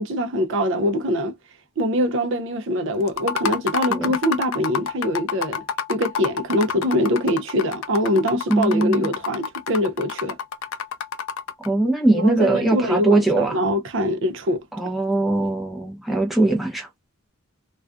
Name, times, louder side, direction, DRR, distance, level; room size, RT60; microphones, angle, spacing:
voice 1, 0.0-1.3 1.8-5.6 5.9-10.4 12.1-14.6, equal, 60° right, 0.5 m, -23 dB
sound 1, 3.1-11.7, left 7 dB, 70° left, 0.4 m, -29 dB
voice 2, 8.5-9.1 11.6-13.6 14.8-16.9, right 2 dB, ahead, 0.6 m, -20 dB
2.4 x 2.2 x 2.4 m
head